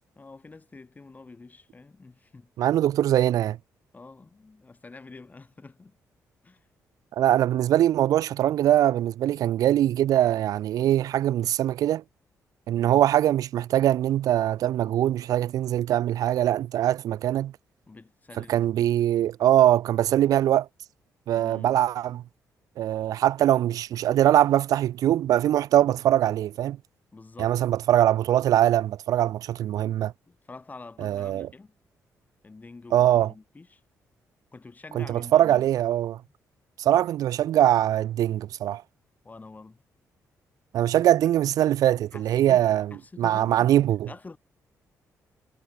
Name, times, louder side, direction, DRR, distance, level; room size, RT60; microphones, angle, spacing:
voice 1, 0.2-2.5 3.9-5.9 6.4-6.6 12.8-13.1 17.9-18.9 21.4-21.8 27.1-27.6 30.3-31.7 32.4-33.8 34.5-35.7 39.2-39.8 42.1-43.7 44.1-44.4, left 3 dB, 25° left, 4.4 m, -46 dB
voice 2, 2.6-3.6 7.2-12.0 12.7-17.5 18.5-20.7 21.3-22.2 22.8-26.8 27.4-30.1 31.0-31.5 32.9-33.3 34.9-36.2 36.8-38.8 40.7-42.9 43.2-44.1, right 12 dB, 75° right, 0.5 m, -22 dB
cardioid pair, 80°, 6 cm